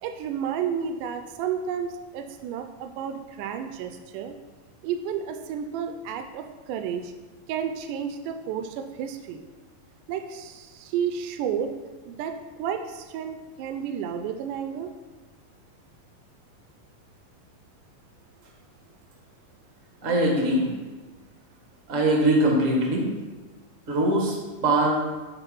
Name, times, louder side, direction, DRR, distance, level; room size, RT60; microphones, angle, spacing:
voice 1, 0.0-4.3 4.8-7.1 7.5-9.4 10.1-11.7 12.1-12.3 12.6-14.9, right 8 dB, 85° right, 6 dB, 2.1 m, -31 dB
voice 2, 20.0-20.7 21.9-23.1 23.9-24.4 24.6-25.0, right 1 dB, 55° right, 0 dB, 0.8 m, -21 dB
8.1 x 4.2 x 5.4 m, 1.2 s
omnidirectional pair, 3.7 m